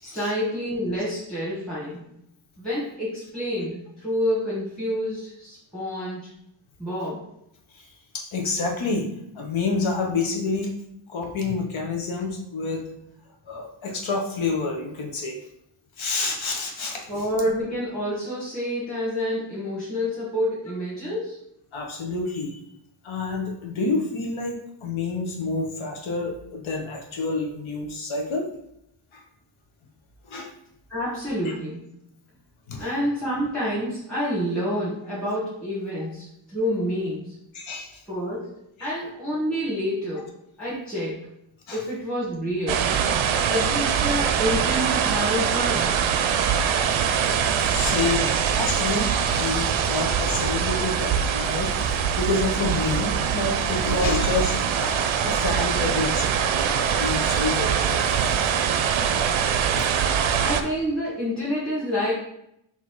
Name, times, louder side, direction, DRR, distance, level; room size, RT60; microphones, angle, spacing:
voice 1, 0.0-2.0 2.6-6.3 6.8-7.3 17.1-21.4 30.9-31.8 32.8-37.3 38.1-40.3 40.6-41.2 41.7-42.8 43.5-45.9 60.4-62.1, equal, ahead, -9 dB, 1.3 m, -28 dB
voice 2, 7.7-9.0 9.3-10.7 11.1-12.9 13.5-15.4 16.0-17.3 21.7-22.6 23.0-28.4 29.1-29.2 30.2-30.5 31.4-31.5 32.7-32.9 37.5-38.0 38.8-38.9 41.7-41.8 43.3-43.5 46.3-46.4 47.2-58.6 59.7-59.8, left 3 dB, 75° left, 1 dB, 0.9 m, -29 dB
sound 1, 42.7-60.6, right 7 dB, 80° right, 0.5 m, -23 dB
4.1 x 2.8 x 4.6 m, 0.77 s
wide cardioid pair, 120°, 47 cm